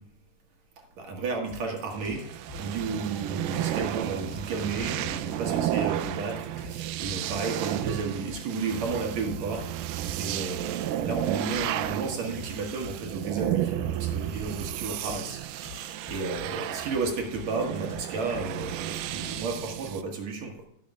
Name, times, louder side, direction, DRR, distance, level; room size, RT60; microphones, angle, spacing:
voice 1, 1.0-20.5, right 4 dB, 60° right, 1 dB, 2.9 m, -33 dB
sound 1, 1.5-19.6, left 4 dB, 25° left, 1.0 m, -47 dB
sound 2, 1.9-20.0, right 12 dB, 80° right, 2.1 m, -32 dB
17.0 x 7.5 x 2.4 m, 0.77 s
omnidirectional pair, 3.7 m